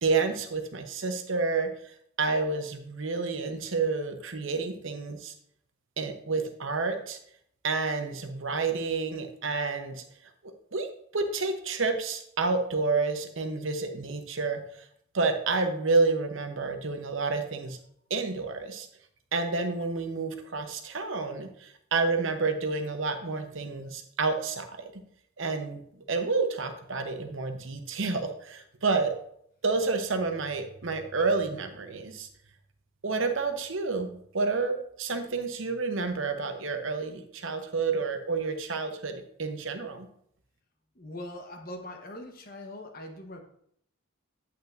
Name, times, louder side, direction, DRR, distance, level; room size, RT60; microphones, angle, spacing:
voice 1, 0.0-1.7 2.2-5.3 6.0-7.2 7.6-10.0 10.7-10.9 11.1-14.6 15.1-17.8 18.1-18.9 19.3-24.9 25.4-25.8 26.1-29.1 29.6-32.3 33.0-34.1 34.3-40.1, right 4 dB, 65° right, 6 dB, 0.9 m, -29 dB
voice 2, 40.9-43.4, left 1 dB, 45° left, 4 dB, 1.1 m, -41 dB
8.5 x 8.3 x 2.6 m, 0.68 s
head